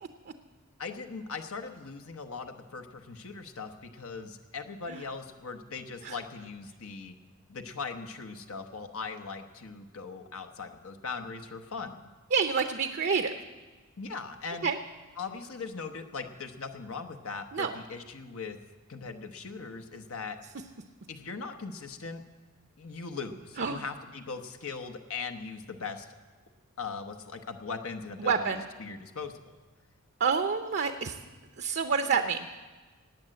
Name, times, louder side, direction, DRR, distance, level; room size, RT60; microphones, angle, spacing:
voice 1, 0.8-7.1 7.5-12.0 14.0-14.7 15.2-18.6 18.9-20.4 21.1-22.2 22.8-26.1 26.8-29.3, left 4 dB, 75° left, 5 dB, 1.0 m, -39 dB
voice 2, 12.3-13.3 14.6-14.8 17.5-17.7 23.6-23.8 28.2-28.6 30.2-31.1 31.6-32.5, right 5 dB, 50° right, 6 dB, 0.7 m, -28 dB
18.5 x 9.1 x 7.7 m, 1.3 s
head